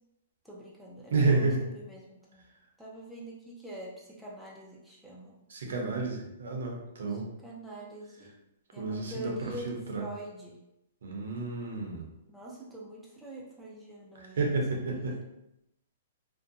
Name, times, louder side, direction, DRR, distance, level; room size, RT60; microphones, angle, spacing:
voice 1, 0.4-2.4 2.8-5.3 7.1-8.3 8.7-10.6 12.3-15.2, right 1 dB, ahead, -5 dB, 0.5 m, -45 dB
voice 2, 1.1-1.7 5.5-7.3 8.8-10.0 11.0-12.0 14.2-15.2, right 3 dB, 80° right, 0 dB, 0.7 m, -30 dB
2.6 x 2.2 x 2.6 m, 0.86 s
hypercardioid pair, 150°, 0 cm